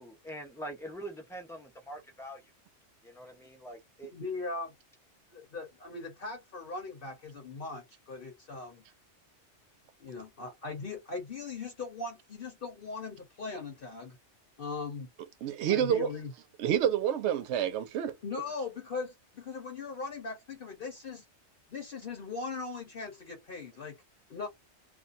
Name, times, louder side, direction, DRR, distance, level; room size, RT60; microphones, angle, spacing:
voice 1, 0.0-2.4 3.0-4.1, right 1 dB, 5° left, 0.4 m, -44 dB
voice 2, 4.1-4.7 5.3-8.8 10.0-14.2 14.6-15.1 15.7-16.3 18.2-21.2 21.7-24.0 24.3-24.5, left 4 dB, 55° left, 0.9 m, -39 dB
voice 3, 15.4-16.1 16.6-18.1, right 9 dB, 70° right, 0.8 m, -28 dB
2.5 x 2.2 x 2.5 m
omnidirectional pair, 1.2 m